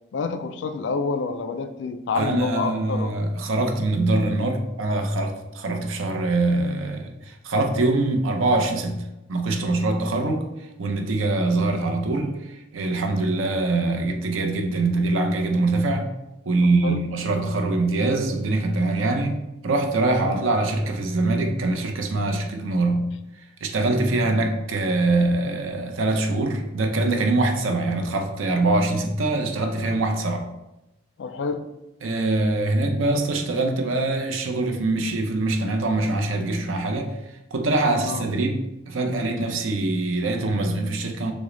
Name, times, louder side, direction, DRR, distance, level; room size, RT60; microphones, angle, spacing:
voice 1, 0.1-3.2 14.6-14.7 16.6-17.0 20.2-20.5 31.2-31.7 38.0-38.3, left 4 dB, 60° left, 0.3 m, -28 dB
voice 2, 2.1-9.0 9.3-10.5 10.8-16.1 16.5-23.1 23.6-30.5 32.0-37.1 37.5-41.3, right 2 dB, 80° right, 0.6 m, -23 dB
6.1 x 2.1 x 3.8 m
head